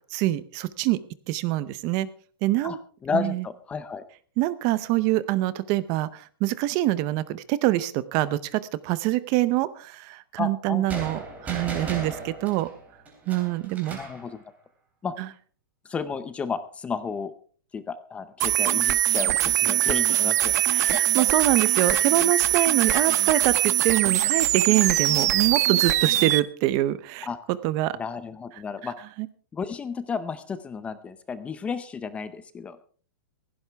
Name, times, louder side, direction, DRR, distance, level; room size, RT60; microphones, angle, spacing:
voice 1, 0.1-1.0 1.3-2.1 2.4-2.8 3.1-3.4 4.4-12.7 13.3-14.0 20.7-28.0 28.8-28.9 29.2-29.3, right 16 dB, 30° right, 16 dB, 0.7 m, -25 dB
voice 2, 3.0-4.0 10.4-11.0 13.9-14.4 15.0-15.1 15.9-17.3 17.7-21.0 27.2-27.4 27.9-28.9 29.5-32.8, left 5 dB, 10° left, 13 dB, 0.6 m, -32 dB
sound 1, 10.9-14.2, right 3 dB, 10° right, 3.3 m, -36 dB
sound 2, 18.4-26.4, right 14 dB, 45° right, 1.0 m, -22 dB
17.0 x 15.5 x 3.4 m, 0.43 s
hypercardioid pair, 165°, 12 cm